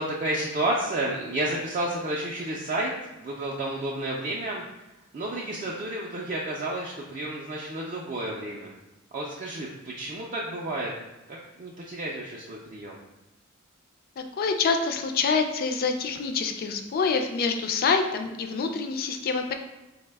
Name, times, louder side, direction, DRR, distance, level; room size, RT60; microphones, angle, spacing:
voice 1, 0.0-2.9 3.2-4.6 5.1-8.7 9.1-10.9 11.3-13.0, right 1 dB, 40° right, -4 dB, 0.4 m, -31 dB
voice 2, 14.2-19.5, left 5 dB, 45° left, 5 dB, 0.3 m, -26 dB
4.0 x 2.1 x 3.3 m, 1.0 s
head